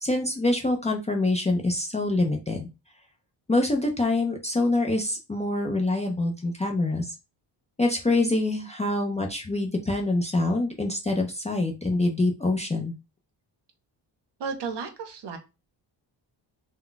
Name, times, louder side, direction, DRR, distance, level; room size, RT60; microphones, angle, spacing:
voice 1, 0.0-2.7 3.5-7.1 7.8-12.9, left 2 dB, 15° left, 1 dB, 0.4 m, -25 dB
voice 2, 14.4-15.4, right 5 dB, 65° right, 7 dB, 0.7 m, -33 dB
2.2 x 2.1 x 3.8 m, 0.27 s
cardioid pair, 105°, 44 cm